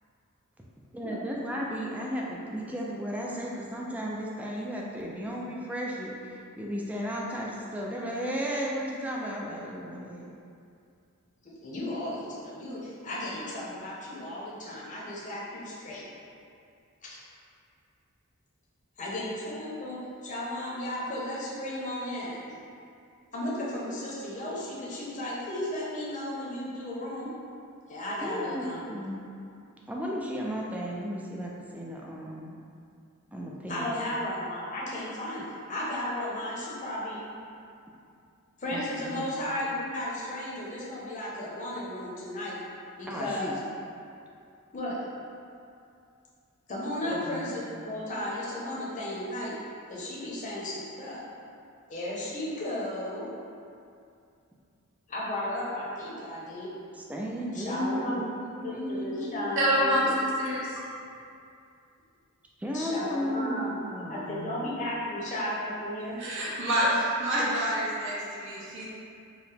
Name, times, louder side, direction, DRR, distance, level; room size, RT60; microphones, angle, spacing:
voice 1, 0.9-10.3 28.2-29.2 29.9-32.6 33.3-34.0 38.7-39.2 43.1-43.6 47.0-47.5 56.9-60.6 62.6-64.5, equal, 5° right, -3 dB, 0.3 m, -34 dB
voice 2, 11.4-16.0 17.0-17.2 19.0-20.0 20.2-22.5 23.3-27.3 27.9-28.9 33.7-37.2 38.6-42.6 43.0-43.6 44.7-45.0 46.7-49.5 49.9-51.2 51.9-53.3 55.1-56.7 57.5-58.2 58.6-60.1 62.7-63.8 64.1-66.2, left 1 dB, 35° left, -6 dB, 0.7 m, -34 dB
voice 3, 59.6-60.7 66.2-68.9, equal, 60° right, -6 dB, 0.8 m, -27 dB
4.7 x 2.1 x 3.3 m, 2.5 s
head